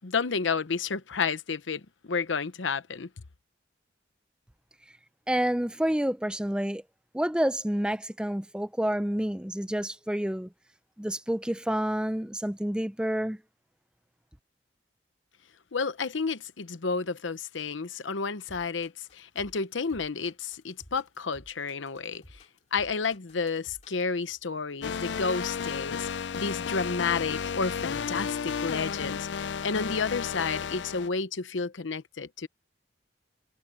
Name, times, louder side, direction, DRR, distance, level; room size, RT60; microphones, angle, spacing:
voice 1, 0.0-3.1 15.7-22.4 22.7-32.5, left 5 dB, 85° left, 0.8 m, -31 dB
voice 2, 5.3-6.8 7.1-10.5 11.0-13.4, equal, 5° right, 0.5 m, -29 dB
sound 1, 18.5-24.1, left 1 dB, 35° left, 2.8 m, -54 dB
sound 2, 24.8-31.1, left 6 dB, 70° left, 0.5 m, -33 dB
head